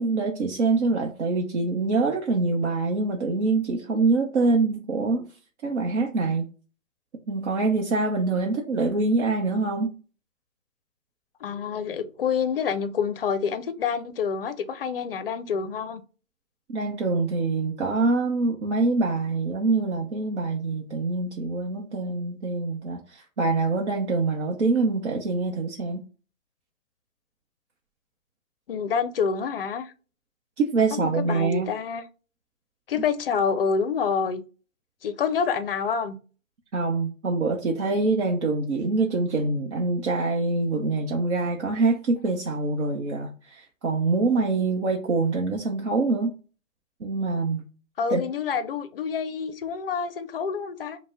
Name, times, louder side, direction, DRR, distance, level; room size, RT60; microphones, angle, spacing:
voice 1, 0.0-5.3 5.6-6.5 7.3-9.9 16.7-26.0 30.6-31.7 36.7-46.3 47.0-47.6 48.1-48.2, right 3 dB, 55° right, 0.8 m, -25 dB
voice 2, 11.4-16.0 28.7-29.9 30.9-32.0 32.9-34.4 35.0-36.2 48.0-51.0, left 6 dB, 45° left, 0.5 m, -27 dB
5.1 x 2.1 x 3.3 m
hypercardioid pair, 145°, 41 cm